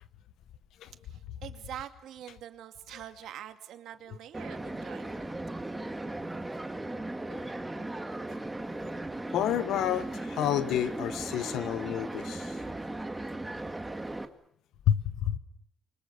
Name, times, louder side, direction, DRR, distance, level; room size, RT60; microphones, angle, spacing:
voice 1, 1.0-5.3, right 10 dB, 80° right, 2.3 m, -45 dB
sound 1, 4.3-14.2, right 2 dB, 15° right, 2.1 m, -37 dB
voice 2, 9.3-12.6 14.9-15.4, left 11 dB, 85° left, 1.5 m, -29 dB
29.5 x 24.5 x 7.0 m
cardioid pair, 90°, 0 cm